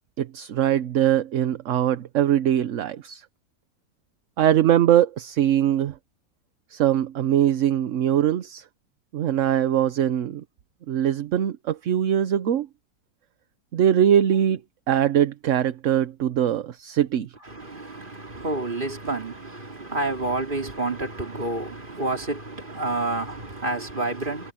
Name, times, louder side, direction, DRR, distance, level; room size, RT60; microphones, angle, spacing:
voice 1, 0.2-3.2 4.4-5.9 6.7-8.6 9.1-10.4 10.9-12.7 13.7-14.6 14.9-17.3, right 10 dB, 60° right, 1.0 m, -22 dB
voice 2, 17.4-24.5, right 2 dB, 30° right, 3.2 m, -29 dB
omnidirectional pair, 1.7 m